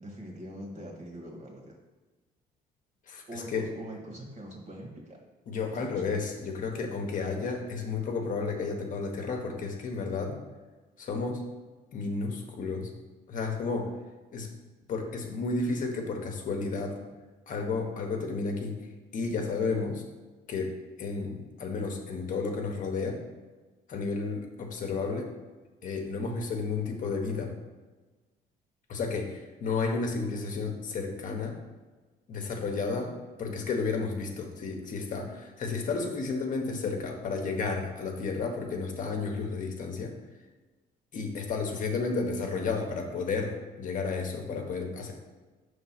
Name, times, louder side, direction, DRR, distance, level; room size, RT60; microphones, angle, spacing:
voice 1, 0.0-1.8 3.3-5.2 5.7-6.1, right 1 dB, 40° right, -1 dB, 1.7 m, -43 dB
voice 2, 3.1-3.7 5.5-10.4 11.0-11.4 11.9-12.9 13.3-13.9 14.3-14.5 14.9-17.0 17.5-18.7 19.1-20.0 20.5-20.7 21.0-23.2 23.9-25.3 25.8-27.5 28.9-31.6 32.3-40.2 41.1-45.1, left 4 dB, 50° left, 2 dB, 0.9 m, -32 dB
5.4 x 3.3 x 5.7 m, 1.3 s
cardioid pair, 110°, 17 cm